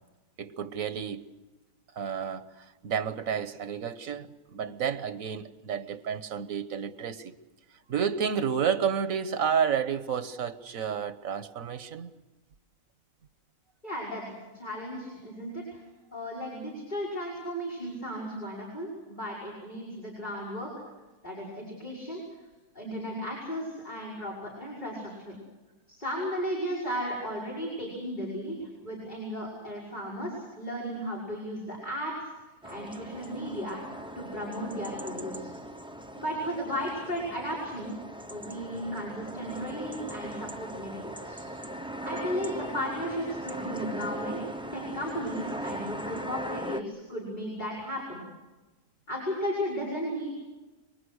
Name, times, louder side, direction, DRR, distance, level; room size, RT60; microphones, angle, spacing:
voice 1, 0.4-1.3 2.0-7.3 7.9-12.1, right 7 dB, 85° right, 1.5 m, -31 dB
voice 2, 13.8-14.3 14.5-15.8 16.1-20.7 21.2-22.2 22.7-25.4 25.9-33.8 34.1-35.5 36.2-38.0 38.3-41.4 42.0-44.4 44.7-48.2 49.1-50.3, equal, 35° left, 6.2 m, -35 dB
sound 1, 32.6-46.8, right 1 dB, 5° right, 0.8 m, -39 dB
27.5 x 24.0 x 6.5 m
omnidirectional pair, 1.4 m